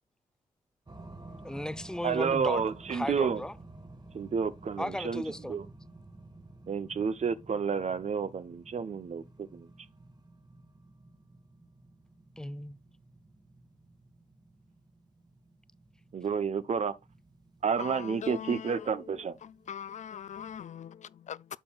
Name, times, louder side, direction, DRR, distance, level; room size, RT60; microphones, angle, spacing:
sound 1, 0.9-20.7, right 2 dB, 30° right, 1.6 m, -52 dB
voice 1, 1.4-2.6 2.9-3.5 4.8-5.6 12.4-12.8, left 1 dB, 5° left, 0.6 m, -35 dB
voice 2, 2.0-3.4 4.1-5.2 5.5-5.6 6.7-9.7 16.1-16.9 17.6-19.4, right 6 dB, 55° right, 0.8 m, -30 dB
voice 3, 17.8-21.6, left 8 dB, 60° left, 0.4 m, -42 dB
11.0 x 6.1 x 2.3 m
supercardioid pair, 50°, 14 cm